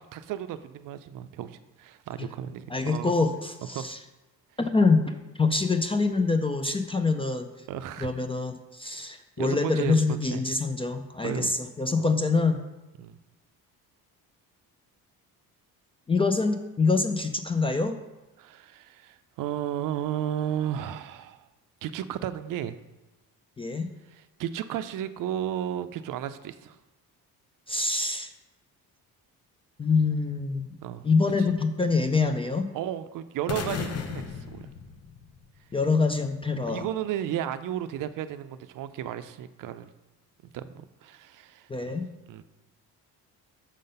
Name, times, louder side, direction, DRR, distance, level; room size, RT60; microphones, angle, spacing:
voice 1, 0.1-3.1 3.7-3.9 7.7-8.2 9.4-10.5 11.2-11.5 11.9-12.1 13.0-13.2 18.4-21.4 21.8-22.8 24.1-26.8 30.8-31.0 31.4-31.5 32.7-34.7 36.7-39.9 40.5-42.0 42.3-42.4, right 11 dB, 60° right, 12 dB, 0.5 m, -34 dB
voice 2, 2.7-4.0 4.6-7.5 8.0-12.6 16.1-18.0 23.6-23.9 27.7-28.3 29.8-30.7 31.0-32.7 35.7-36.9 41.7-42.0, left 4 dB, 15° left, 7 dB, 0.3 m, -25 dB
sound 1, 33.5-35.6, left 6 dB, 45° left, 0.7 m, -35 dB
6.4 x 3.9 x 5.3 m, 1.1 s
cardioid pair, 115°, 37 cm